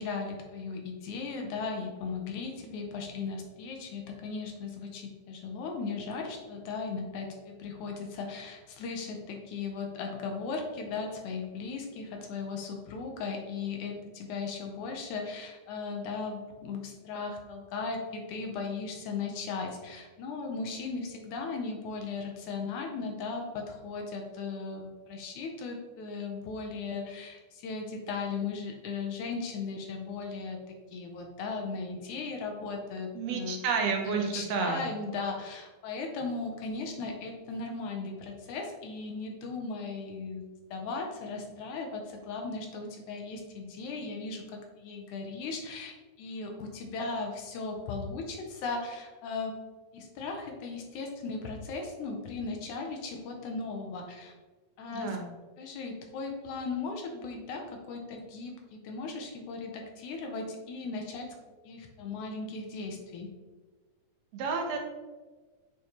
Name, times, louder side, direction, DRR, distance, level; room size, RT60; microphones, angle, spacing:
voice 1, 0.0-33.6 34.0-49.5 49.9-54.3 54.8-55.2 55.6-61.4 61.7-63.3, left 4 dB, 75° left, 2 dB, 2.1 m, -37 dB
voice 2, 33.1-34.8 54.9-55.2 64.3-64.8, right 5 dB, 70° right, 2 dB, 1.8 m, -30 dB
7.1 x 4.9 x 2.9 m, 1.3 s
omnidirectional pair, 3.6 m